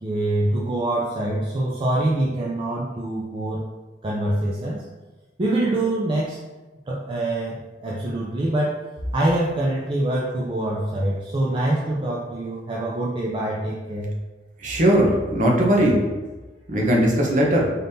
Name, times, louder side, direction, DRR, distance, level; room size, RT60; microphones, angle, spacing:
voice 1, 0.0-3.7 4.0-4.9 5.4-6.4 6.9-8.8 9.1-14.1, right 1 dB, 30° right, -5 dB, 0.4 m, -25 dB
voice 2, 14.6-16.0 16.7-17.7, right 1 dB, 45° right, -2 dB, 0.9 m, -19 dB
4.0 x 2.7 x 3.5 m, 1.2 s
head